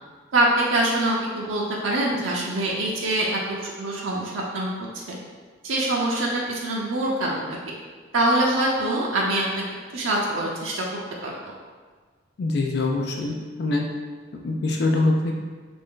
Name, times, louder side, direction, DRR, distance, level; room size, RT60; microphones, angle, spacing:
voice 1, 0.3-4.7 4.9-5.2 5.6-7.4 8.1-9.4 9.9-10.8 11.2-11.3, right 1 dB, 85° right, -3 dB, 0.5 m, -24 dB
voice 2, 12.4-13.8 14.3-15.3, left 2 dB, 55° left, 1 dB, 0.3 m, -24 dB
3.2 x 2.6 x 3.6 m, 1.5 s
head